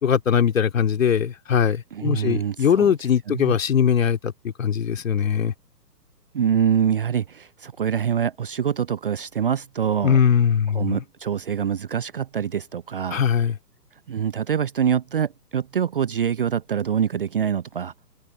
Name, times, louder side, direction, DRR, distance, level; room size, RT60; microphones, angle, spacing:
voice 1, 0.0-5.5 10.0-11.0 13.1-13.6, left 8 dB, 50° left, 3.2 m, -21 dB
voice 2, 1.9-2.9 3.3-3.6 6.3-10.2 10.7-13.2 14.1-17.9, right 8 dB, 35° right, 0.7 m, -25 dB
open air
figure-of-eight pair, 130°, 49 cm